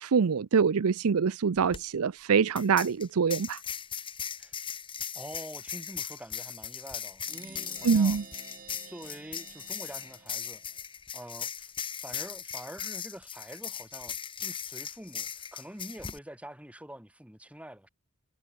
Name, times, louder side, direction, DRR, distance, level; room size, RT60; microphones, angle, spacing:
voice 1, 0.0-3.6 7.8-8.2, right 6 dB, 75° right, 0.5 m, -25 dB
sound 1, 1.6-1.8 2.6-16.2, left 8 dB, 25° left, 1.4 m, -38 dB
voice 2, 5.1-8.2 8.8-10.6 11.1-17.9, equal, 5° right, 7.9 m, -46 dB
sound 2, 7.3-10.8, right 5 dB, 40° right, 5.9 m, -50 dB
head